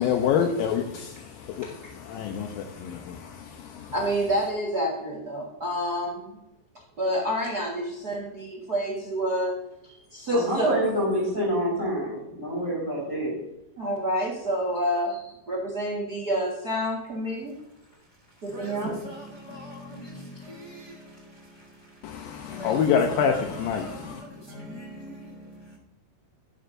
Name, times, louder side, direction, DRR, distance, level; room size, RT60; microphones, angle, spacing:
voice 1, 0.0-3.9 22.0-24.2, left 7 dB, 75° left, 2.4 m, -27 dB
voice 2, 3.9-6.4 7.0-9.6 10.1-10.7 13.8-17.5 18.4-18.9 19.9-20.4, equal, 55° right, 1.0 m, -28 dB
voice 3, 10.3-13.3, equal, 15° left, 4.2 m, -27 dB
voice 4, 17.8-25.8, left 1 dB, 60° left, 1.0 m, -43 dB
11.0 x 11.0 x 2.6 m
omnidirectional pair, 4.4 m